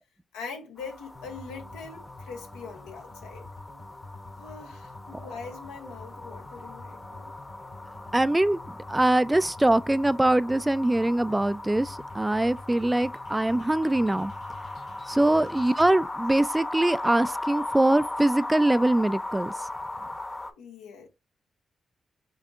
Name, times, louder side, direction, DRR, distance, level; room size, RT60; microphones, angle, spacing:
voice 1, 0.3-3.5 4.4-7.4 15.1-15.4 20.4-21.1, left 5 dB, 90° left, 0.8 m, -42 dB
sound 1, 0.8-20.5, left 2 dB, 25° left, 0.8 m, -38 dB
sound 2, 1.1-15.9, left 2 dB, 70° left, 1.7 m, -47 dB
voice 2, 8.1-8.6 8.9-14.3 15.1-19.5, right 1 dB, 15° right, 0.3 m, -23 dB
5.7 x 2.7 x 2.5 m
supercardioid pair, 45°, 0 cm